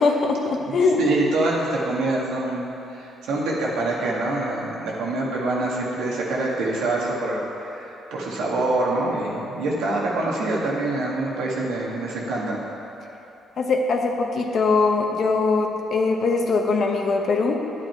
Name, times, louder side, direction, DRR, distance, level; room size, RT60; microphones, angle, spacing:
voice 1, 0.0-1.0 13.6-17.6, left 4 dB, 60° left, 2 dB, 1.1 m, -21 dB
voice 2, 0.7-12.6, right 2 dB, 90° right, -4 dB, 1.9 m, -25 dB
10.0 x 8.8 x 4.6 m, 2.9 s
cardioid pair, 90°, 0 cm